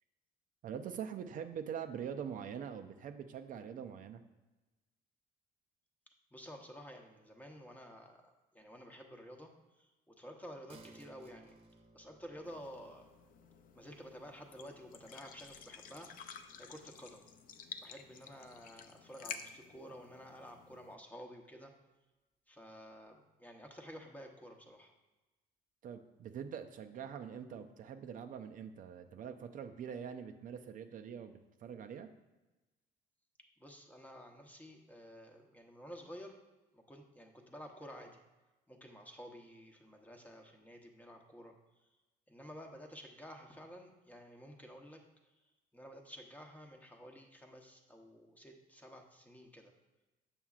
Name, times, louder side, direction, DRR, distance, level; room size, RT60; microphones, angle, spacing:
voice 1, 0.6-4.2 25.8-32.1, right 8 dB, 55° right, 7 dB, 0.5 m, -44 dB
voice 2, 6.3-9.5 9.8-11.6 11.9-13.1 13.7-16.1 16.6-17.3 17.8-21.7 22.5-24.9 33.6-36.4 36.7-38.2 38.7-41.5 42.3-45.0 45.7-49.7, equal, 10° left, 2 dB, 0.9 m, -52 dB
sound 1, 10.7-17.7 18.1-18.2, right 2 dB, 35° right, 0.9 m, -63 dB
sound 2, 12.4-20.9, left 7 dB, 55° left, 0.6 m, -52 dB
7.2 x 6.9 x 2.4 m, 1.1 s
cardioid pair, 110°, 17 cm